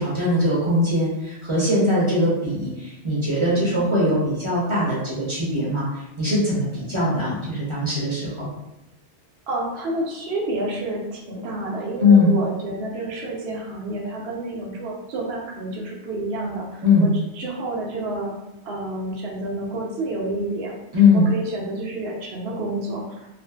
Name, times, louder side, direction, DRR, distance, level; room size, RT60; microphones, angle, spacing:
voice 1, 0.0-8.5 12.0-12.3 16.8-17.1 20.9-21.3, left 2 dB, 35° right, -7 dB, 0.6 m, -20 dB
voice 2, 3.5-3.9 9.5-18.3 18.6-20.7 21.1-23.3, right 2 dB, 70° right, -1 dB, 0.9 m, -29 dB
2.5 x 2.5 x 2.3 m, 0.92 s
omnidirectional pair, 1.2 m